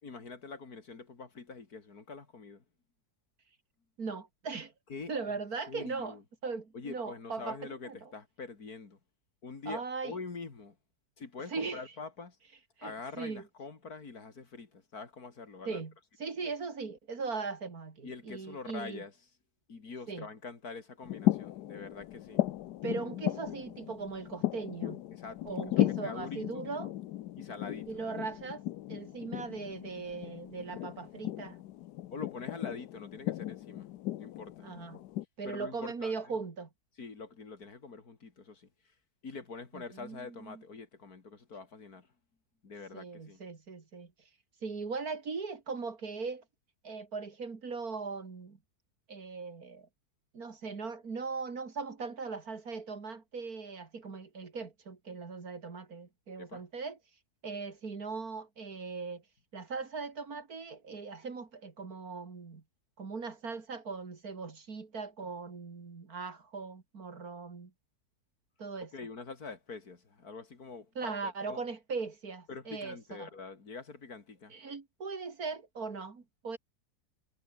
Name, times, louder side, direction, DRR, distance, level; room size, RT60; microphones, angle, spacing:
voice 1, 0.0-2.6 4.9-5.1 5.7-6.2 6.7-9.0 9.4-10.8 11.2-12.4 12.8-15.8 18.0-19.1 19.7-22.4 25.1-26.7 27.4-28.0 32.1-33.9 34.2-34.7 35.4-36.2 37.0-38.7 39.2-42.1 42.6-43.4 56.4-56.6 68.9-71.6 72.5-74.6, left 4 dB, 65° left, 3.2 m, -45 dB
voice 2, 4.0-4.7 5.1-6.2 6.4-7.6 7.8-8.1 9.7-10.1 11.5-11.8 12.8-13.4 15.7-15.9 16.2-19.0 20.1-20.3 22.8-25.0 25.4-26.9 27.9-28.6 28.9-31.6 34.6-35.0 35.4-36.7 39.7-40.6 42.9-44.1 44.6-46.4 46.8-48.6 49.1-49.9 50.3-57.0 57.4-59.2 59.5-62.6 63.0-67.7 68.6-68.9 71.0-73.3 74.5-76.6, right 4 dB, 60° right, 2.9 m, -39 dB
sound 1, 21.0-35.2, left 14 dB, 80° left, 1.3 m, -36 dB
omnidirectional pair, 1.8 m